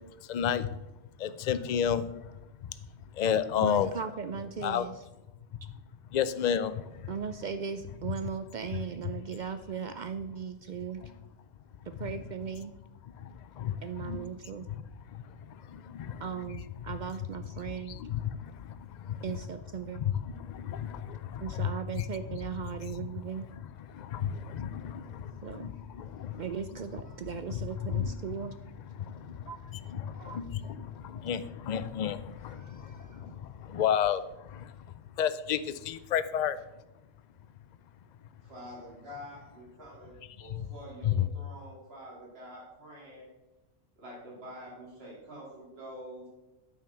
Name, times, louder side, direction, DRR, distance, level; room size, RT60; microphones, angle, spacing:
voice 1, 0.3-0.7 1.2-2.1 3.2-3.9 4.6-4.9 6.1-7.1 13.2-14.2 15.1-15.2 15.7-16.2 17.9-19.2 20.0-20.1 20.4-21.7 23.9-26.4 27.9-28.1 29.0-29.5 29.9-34.7 35.2-36.6 40.6-40.7 41.1-41.2, left 9 dB, 70° left, 0.4 m, -32 dB
voice 2, 3.6-5.0 7.1-11.0 11.9-12.8 13.8-14.7 16.2-18.0 19.2-20.0 21.4-23.5 25.4-25.7 26.4-28.5 29.5-29.6 30.2-30.7 32.5-33.4, right 7 dB, 75° right, 0.4 m, -38 dB
voice 3, 38.4-43.3 44.0-46.3, equal, 50° right, 3.0 m, -47 dB
8.9 x 5.7 x 5.7 m
omnidirectional pair, 1.3 m